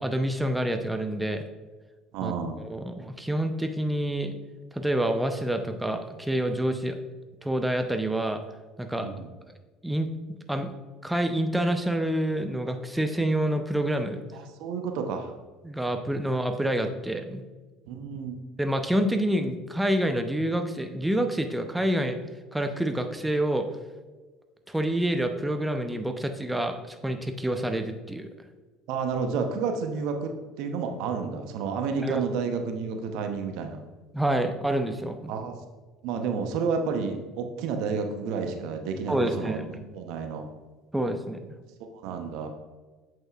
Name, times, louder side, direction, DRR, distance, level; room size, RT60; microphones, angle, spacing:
voice 1, 0.0-1.4 2.2-2.3 2.6-4.4 4.7-7.0 7.4-8.4 8.8-9.1 9.8-10.7 11.0-14.2 15.6-17.4 18.6-22.2 22.5-23.7 24.7-28.3 32.0-32.2 34.1-35.3 39.1-39.7 40.9-41.4, right 1 dB, 5° right, 6 dB, 0.7 m, -27 dB
voice 2, 2.1-2.6 9.0-9.3 14.3-15.3 17.9-18.4 28.9-33.8 35.3-35.6 36.0-40.5 42.0-42.5, right 5 dB, 65° right, 6 dB, 0.8 m, -30 dB
7.9 x 7.5 x 2.4 m, 1.3 s
hypercardioid pair, 70°, 0 cm